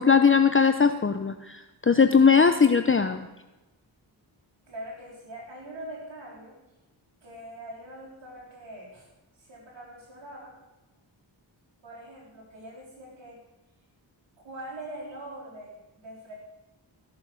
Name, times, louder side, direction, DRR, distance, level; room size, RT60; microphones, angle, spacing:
voice 1, 0.0-3.3, left 5 dB, 25° left, 8 dB, 0.7 m, -20 dB
voice 2, 4.7-6.6 7.2-9.1 9.4-10.6 11.8-13.4 14.4-16.3, right 1 dB, 70° right, -5 dB, 4.5 m, -42 dB
15.5 x 7.1 x 6.4 m, 1.0 s
cardioid pair, 50°, 46 cm